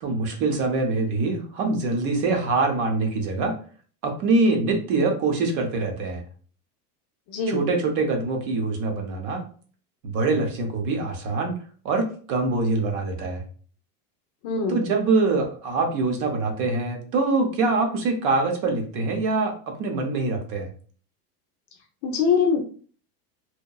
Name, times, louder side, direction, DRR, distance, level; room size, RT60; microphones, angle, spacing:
voice 1, 0.0-3.6 4.0-6.2 7.5-9.4 10.0-11.6 11.8-13.4 14.7-20.7, right 3 dB, 40° right, 3 dB, 0.6 m, -24 dB
voice 2, 7.3-7.6 14.4-14.8 22.0-22.6, left 5 dB, 45° left, 3 dB, 0.5 m, -22 dB
2.8 x 2.1 x 2.3 m, 0.43 s
supercardioid pair, 145°, 47 cm